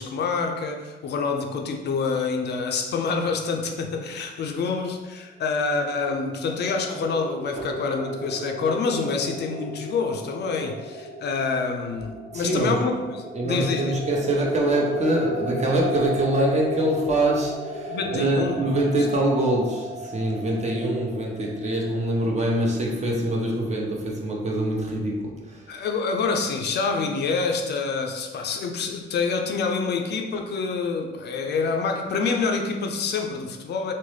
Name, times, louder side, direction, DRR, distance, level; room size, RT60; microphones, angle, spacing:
voice 1, 0.0-13.0 13.4-13.9 17.9-18.6 25.7-33.9, left 4 dB, 60° left, 3 dB, 0.4 m, -27 dB
sound 1, 5.7-22.3, equal, 65° right, 0.9 m, -35 dB
voice 2, 12.3-12.8 13.3-25.8, right 1 dB, 35° right, -2 dB, 0.8 m, -24 dB
3.8 x 2.0 x 3.1 m, 1.3 s
cardioid pair, 90°, 20 cm